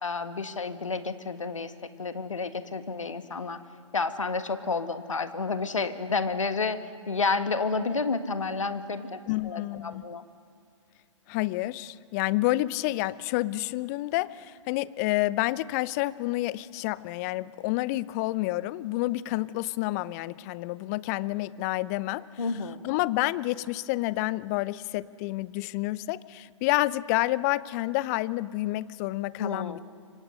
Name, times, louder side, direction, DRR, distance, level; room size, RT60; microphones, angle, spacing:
voice 1, 0.0-3.6 3.9-6.8 7.1-9.2 9.4-10.2 22.4-22.9 29.4-29.8, left 4 dB, 75° left, 10 dB, 1.6 m, -30 dB
voice 2, 9.3-10.0 11.3-22.3 22.8-29.8, left 18 dB, 30° left, 20 dB, 0.6 m, -29 dB
26.0 x 25.0 x 6.5 m, 2.3 s
figure-of-eight pair, 115°, 16 cm